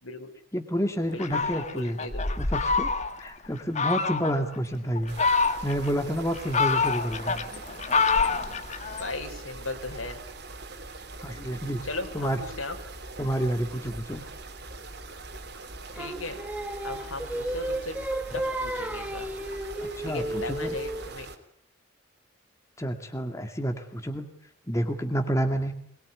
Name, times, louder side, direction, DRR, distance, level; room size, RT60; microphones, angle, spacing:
voice 1, 0.0-0.3 1.1-2.3 9.0-10.2 11.8-12.8 16.0-16.4 16.8-18.0 18.3-19.3 20.0-21.3, left 2 dB, 85° left, 5 dB, 4.7 m, -37 dB
voice 2, 0.5-2.0 2.4-2.9 3.2-5.1 5.4-7.3 11.2-11.8 12.1-12.4 13.2-14.2 20.0-20.7 22.8-24.3 24.7-25.7, equal, 15° left, 5 dB, 2.2 m, -29 dB
Fowl, 1.2-3.3 3.7-4.4 4.9-5.9 6.3-9.1, left 4 dB, 35° left, 1.6 m, -26 dB
sound 1, 5.1-21.4, right 2 dB, 50° right, 3.2 m, -42 dB
Singing, 16.0-21.2, right 1 dB, 5° right, 1.6 m, -33 dB
22.5 x 22.0 x 9.7 m, 0.63 s
head